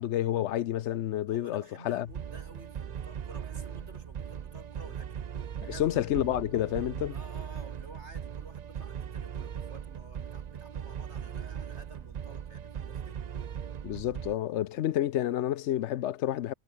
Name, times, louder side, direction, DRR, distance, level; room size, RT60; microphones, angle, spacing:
voice 1, 0.0-2.1 5.8-7.2 13.8-16.5, left 12 dB, 90° left, 0.9 m, -29 dB
voice 2, 1.3-5.3 5.6-6.0 7.1-13.2, right 2 dB, 85° right, 5.3 m, -52 dB
sound 1, 2.1-14.3, right 8 dB, 50° right, 0.6 m, -39 dB
omnidirectional pair, 1.1 m